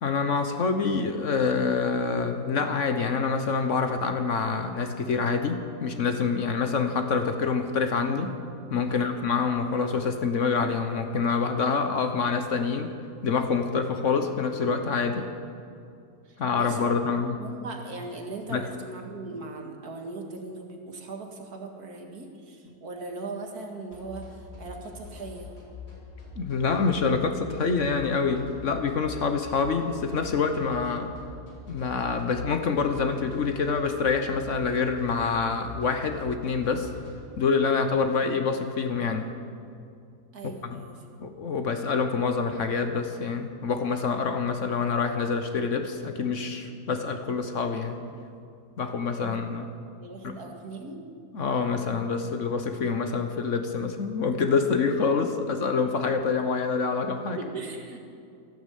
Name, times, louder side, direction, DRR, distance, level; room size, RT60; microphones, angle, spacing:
voice 1, 0.0-8.3 8.7-12.9 13.2-15.3 16.4-17.4 18.5-18.7 26.4-31.1 31.7-36.9 37.4-39.3 40.4-40.8 41.2-48.0 48.8-49.7 50.2-50.3 51.3-57.4, left 5 dB, 55° left, 6 dB, 1.2 m, -26 dB
voice 2, 8.9-9.2 16.3-16.9 17.4-25.5 38.2-38.4 40.3-40.9 49.2-49.4 50.0-51.0 57.4-58.0, right 3 dB, 70° right, 2 dB, 2.3 m, -39 dB
sound 1, 23.9-37.1, left 4 dB, 80° left, 4.8 m, -45 dB
14.5 x 11.5 x 8.3 m, 2.5 s
omnidirectional pair, 1.7 m